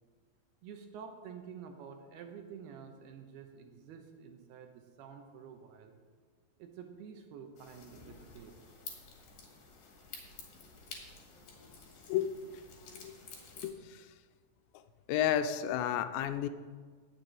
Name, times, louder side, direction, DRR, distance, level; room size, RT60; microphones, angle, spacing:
voice 1, 0.6-5.9 6.6-8.5, right 7 dB, 75° right, 5 dB, 2.7 m, -49 dB
sound 1, 7.6-13.7, left 5 dB, 55° left, 3.1 m, -51 dB
voice 2, 13.6-14.1 15.1-16.5, left 10 dB, 85° left, 10 dB, 2.9 m, -32 dB
9.6 x 7.4 x 9.0 m, 1.5 s
omnidirectional pair, 5.0 m